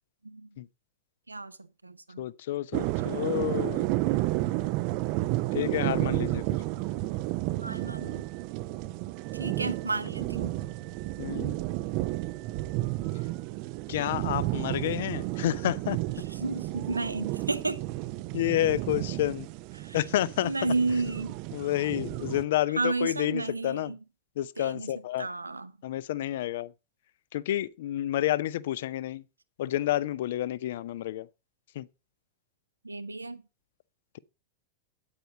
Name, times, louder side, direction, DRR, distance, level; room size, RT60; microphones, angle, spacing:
voice 1, 1.3-2.3 7.6-8.3 9.3-10.6 16.4-17.8 19.8-20.0 20.4-21.3 22.7-24.0 24.6-25.7 32.8-33.4, right 3 dB, 80° right, 0.8 m, -32 dB
voice 2, 2.2-3.9 5.5-6.6 11.2-11.6 13.9-16.0 18.3-19.5 19.9-20.7 21.5-23.9 24.4-25.3 25.8-26.7 27.3-29.2 29.6-31.3 31.7-31.9, left 14 dB, 55° left, 0.6 m, -29 dB
sound 1, 2.7-22.4, right 18 dB, 45° right, 0.5 m, -32 dB
9.1 x 8.7 x 4.0 m
figure-of-eight pair, 90°, 0 cm